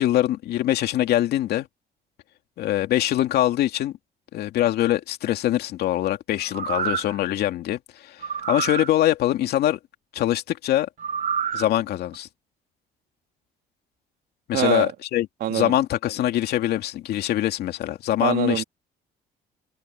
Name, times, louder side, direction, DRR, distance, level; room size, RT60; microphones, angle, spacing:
voice 1, 0.0-1.7 2.6-3.9 4.3-9.8 10.1-10.9 11.5-12.3 14.5-18.6, left 13 dB, 70° left, 2.5 m, -23 dB
sound 1, 6.4-7.2 8.2-8.9 11.0-11.7 12.1-12.2, right 7 dB, 50° right, 3.0 m, -28 dB
voice 2, 14.5-14.9 15.4-15.7 18.2-18.6, right 12 dB, 70° right, 2.5 m, -24 dB
cardioid pair, 110°, 17 cm